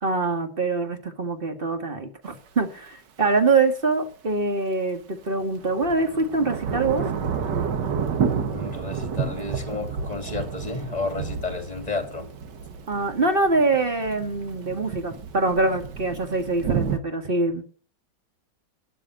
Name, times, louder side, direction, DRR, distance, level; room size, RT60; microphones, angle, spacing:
voice 1, 0.0-7.1 12.9-17.6, right 3 dB, 30° right, 6 dB, 1.9 m, -24 dB
Thunder / Rain, 2.2-2.3 5.3-17.0, right 6 dB, 70° right, 1.9 m, -30 dB
voice 2, 8.5-12.3, left 3 dB, 20° left, 6 dB, 2.9 m, -32 dB
12.5 x 6.6 x 8.2 m, 0.41 s
omnidirectional pair, 1.9 m